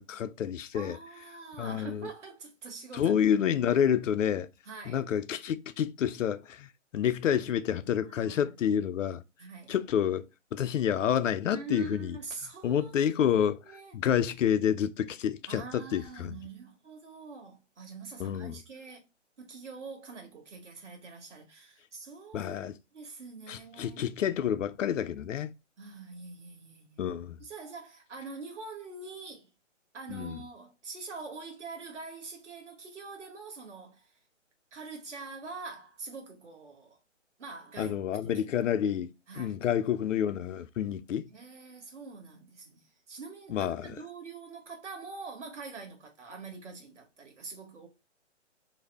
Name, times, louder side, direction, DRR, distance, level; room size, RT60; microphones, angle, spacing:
voice 1, 0.0-1.0 1.6-2.1 2.9-4.5 4.8-9.2 9.7-12.2 12.6-13.6 13.9-16.4 18.2-18.6 22.3-22.8 23.5-25.5 27.0-27.4 30.1-30.4 37.8-41.3 43.5-44.0, left 9 dB, 80° left, 0.5 m, -29 dB
voice 2, 0.7-3.3 4.6-5.0 7.4-7.5 8.0-8.5 9.4-9.7 11.4-12.9 13.6-14.0 15.5-19.0 19.4-22.6 22.9-24.1 25.8-27.1 27.4-29.5 29.9-34.1 34.7-37.0 37.4-38.7 39.3-39.6 41.3-42.8 43.1-47.9, right 4 dB, 70° right, 1.4 m, -44 dB
2.6 x 2.0 x 3.3 m
hypercardioid pair, 145°, 37 cm